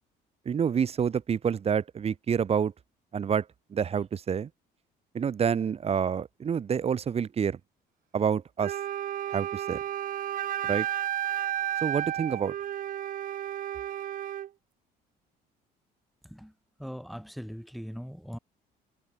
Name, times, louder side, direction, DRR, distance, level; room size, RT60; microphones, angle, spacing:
voice 1, 0.4-2.7 3.1-3.4 3.7-4.5 5.1-7.6 8.1-8.8 9.3-9.8 10.6-10.9 11.8-12.5, right 7 dB, 35° right, 1.4 m, -28 dB
Wind instrument woodwind instrument, 8.6-14.5, right 11 dB, 55° right, 1.1 m, -32 dB
voice 2, 16.8-18.4, equal, ahead, 4.2 m, -40 dB
cardioid pair, 110°, 17 cm